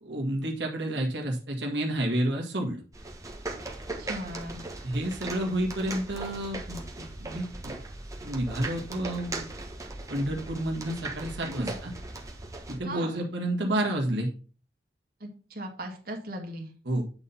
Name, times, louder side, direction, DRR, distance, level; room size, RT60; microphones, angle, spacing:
voice 1, 0.0-2.8 4.8-7.8 8.2-9.5 10.1-11.9 12.7-14.3 16.9-17.0, right 1 dB, 80° right, 0 dB, 1.7 m, -30 dB
sound 1, 2.9-12.8, right 2 dB, 20° right, 1.4 m, -39 dB
voice 2, 4.0-4.6 11.5-11.8 12.8-13.2 15.2-16.7, right 1 dB, 55° right, 2 dB, 1.9 m, -37 dB
8.8 x 4.2 x 5.5 m, 0.38 s
head